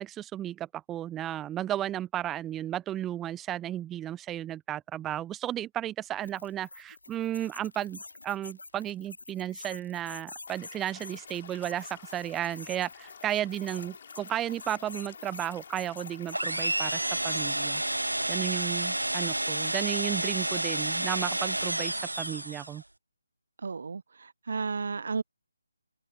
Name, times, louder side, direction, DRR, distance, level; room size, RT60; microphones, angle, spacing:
voice 1, 0.0-17.8 18.3-22.8, right 12 dB, 10° right, 0.9 m, -34 dB
sound 1, 6.1-17.0, left 3 dB, 70° left, 2.5 m, -47 dB
Stream / Liquid, 10.5-17.5, left 7 dB, 40° left, 4.9 m, -50 dB
sound 2, 16.3-22.8, right 1 dB, 80° right, 1.4 m, -30 dB
voice 2, 23.6-25.2, right 4 dB, 55° right, 0.7 m, -33 dB
figure-of-eight pair, 150°, 0 cm